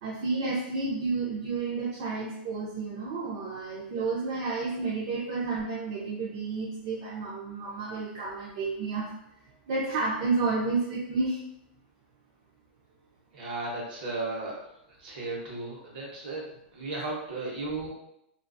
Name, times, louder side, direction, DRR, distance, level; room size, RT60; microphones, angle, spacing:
voice 1, 0.0-9.1 9.7-11.4, right 3 dB, 45° right, -5 dB, 0.5 m, -31 dB
voice 2, 13.3-14.6 15.0-16.5 16.7-17.9, right 2 dB, 60° right, -3 dB, 0.9 m, -35 dB
2.3 x 2.3 x 2.5 m, 0.79 s
supercardioid pair, 165°, 6 cm